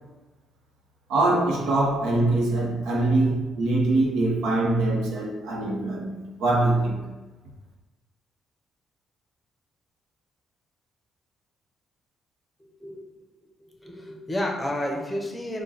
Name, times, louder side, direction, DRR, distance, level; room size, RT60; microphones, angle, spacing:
voice 1, 1.1-7.1, right 2 dB, 85° right, -1 dB, 0.9 m, -23 dB
voice 2, 12.6-13.0 13.8-15.6, left 1 dB, 10° left, 1 dB, 0.8 m, -30 dB
4.8 x 2.3 x 4.1 m, 1.2 s
cardioid pair, 90°, 0 cm